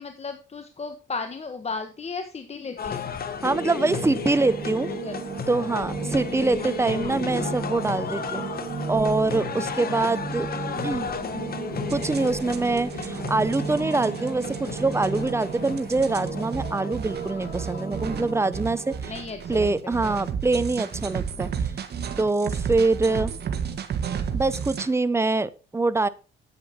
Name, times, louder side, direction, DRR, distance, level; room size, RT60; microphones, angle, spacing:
voice 1, 0.0-3.1 5.0-5.3 6.6-6.7 7.0-7.2 10.4-10.5 19.0-19.9 23.0-23.2, left 4 dB, 30° left, 7 dB, 1.2 m, -35 dB
sound 1, 2.8-18.8, left 6 dB, 50° left, 1.4 m, -34 dB
voice 2, 3.4-4.9 5.5-8.4 8.9-10.5 10.8-11.1 11.9-19.2 19.5-21.5 22.2-23.3 24.3-26.1, right 3 dB, 15° right, 15 dB, 0.7 m, -24 dB
sound 2, 3.4-19.0, right 5 dB, 40° right, 2.4 m, -34 dB
sound 3, 11.9-24.9, right 7 dB, 55° right, 1.8 m, -33 dB
9.9 x 8.5 x 4.3 m, 0.33 s
cardioid pair, 90°, 20 cm